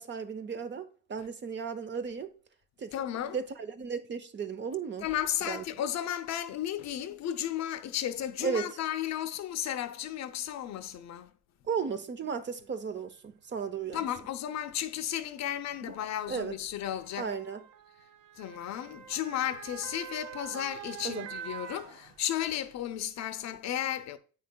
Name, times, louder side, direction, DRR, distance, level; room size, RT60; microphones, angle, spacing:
voice 1, 0.0-2.3 2.8-2.9 3.3-5.1 5.4-5.6 8.4-8.8 11.7-14.1 15.8-16.0 16.3-16.6 17.2-17.6 21.0-21.3, right 6 dB, 35° right, 0.7 m, -35 dB
voice 2, 2.9-3.4 5.0-11.3 13.9-17.3 18.4-24.2, left 11 dB, 50° left, 0.6 m, -34 dB
Motor vehicle (road) / Siren, 12.6-12.7 13.7-13.9 15.0-22.6 23.0-23.1, right 9 dB, 80° right, 0.6 m, -46 dB
8.5 x 5.6 x 2.3 m
supercardioid pair, 80°, 34 cm